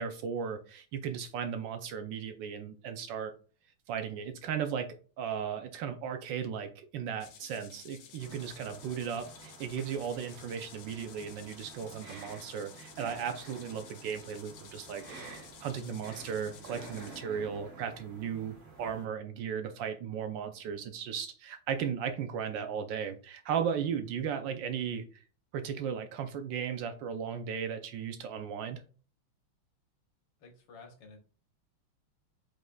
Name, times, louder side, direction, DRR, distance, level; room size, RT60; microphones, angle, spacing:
voice 1, 0.0-3.3 3.9-25.2 25.5-28.8, right 7 dB, 75° right, 8 dB, 1.1 m, -36 dB
sound 1, 7.2-17.2, left 8 dB, 80° left, 1.6 m, -53 dB
sound 2, 8.2-19.1, right 3 dB, 45° right, 1.9 m, -50 dB
voice 2, 30.4-31.2, left 4 dB, 65° left, 3 dB, 1.7 m, -52 dB
5.0 x 4.4 x 2.3 m, 0.38 s
omnidirectional pair, 2.3 m